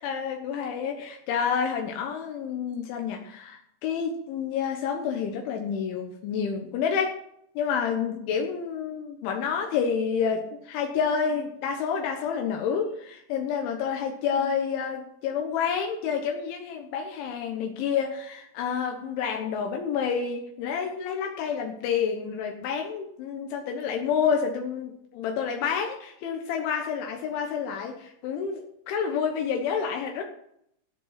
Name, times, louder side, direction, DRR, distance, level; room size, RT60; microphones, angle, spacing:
voice 1, 0.0-7.2 7.6-30.2, left 6 dB, 80° left, 2 dB, 3.7 m, -29 dB
17.0 x 7.7 x 5.8 m, 0.74 s
omnidirectional pair, 5.4 m